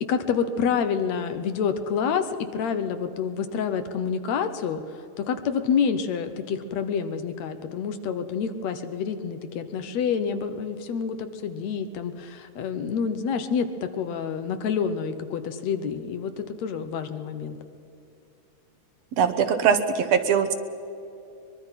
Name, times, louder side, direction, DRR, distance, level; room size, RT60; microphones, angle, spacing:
voice 1, 0.0-4.8 5.2-17.6, left 6 dB, 70° left, 9 dB, 2.1 m, -28 dB
voice 2, 19.2-20.5, right 7 dB, 65° right, 8 dB, 1.9 m, -21 dB
23.0 x 22.0 x 5.8 m, 2.8 s
omnidirectional pair, 3.4 m